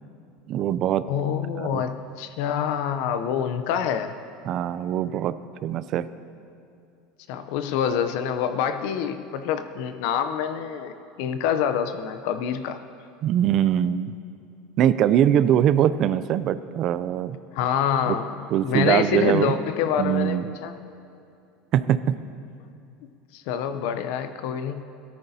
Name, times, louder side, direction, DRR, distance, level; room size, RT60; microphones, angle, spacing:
voice 1, 0.5-1.1 1.6-1.8 4.4-5.4 5.6-6.1 13.2-14.1 14.8-17.4 18.1-18.2 18.5-19.5 20.0-20.5 21.7-22.2, right 10 dB, 45° right, 15 dB, 0.4 m, -22 dB
voice 2, 1.1-4.1 7.3-12.8 17.5-20.7 23.3-24.8, left 8 dB, 70° left, 9 dB, 0.6 m, -26 dB
17.0 x 13.5 x 2.7 m, 2.5 s
supercardioid pair, 130°, 0 cm